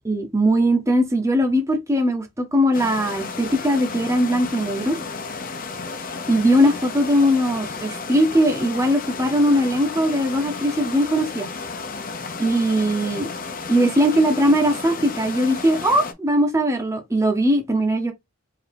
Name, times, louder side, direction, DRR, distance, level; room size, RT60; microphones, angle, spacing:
voice 1, 0.0-5.0 6.3-11.5 12.4-13.3 13.7-18.1, equal, 15° right, 0.7 m, -20 dB
sound 1, 2.7-16.1, left 4 dB, 40° left, 0.6 m, -33 dB
4.6 x 2.7 x 3.4 m
head